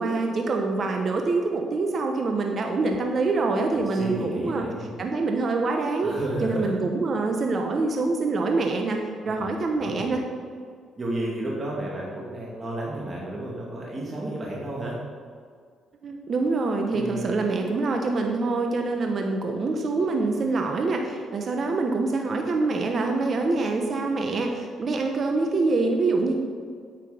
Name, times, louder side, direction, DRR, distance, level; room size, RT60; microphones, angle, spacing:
voice 1, 0.0-4.6 5.0-6.1 6.4-9.0 9.2-10.2 16.0-26.4, right 3 dB, 50° right, 3 dB, 1.1 m, -25 dB
voice 2, 3.7-4.9 6.0-6.7 7.2-7.3 9.2-9.5 9.8-10.2 11.0-15.0 16.9-17.4, right 1 dB, 30° right, -4 dB, 2.3 m, -32 dB
9.6 x 8.3 x 5.1 m, 2.1 s
cardioid pair, 90°, 0 cm